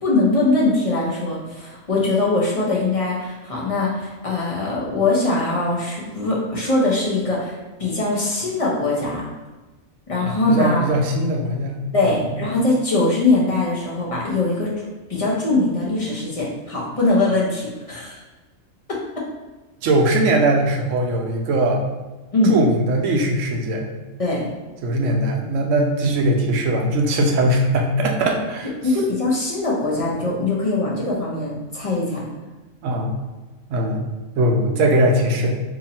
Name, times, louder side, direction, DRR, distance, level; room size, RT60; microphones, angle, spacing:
voice 1, 0.0-9.2 10.1-10.8 11.9-14.7 15.1-18.2 22.3-22.6 24.2-24.5 28.8-32.2, left 2 dB, 40° left, -5 dB, 0.5 m, -21 dB
voice 2, 10.2-12.2 19.8-21.9 22.5-23.9 24.8-28.7 32.8-33.1 33.7-34.1 34.4-35.5, right 1 dB, 75° right, 2 dB, 0.9 m, -20 dB
2.8 x 2.6 x 4.1 m, 1.2 s
omnidirectional pair, 1.4 m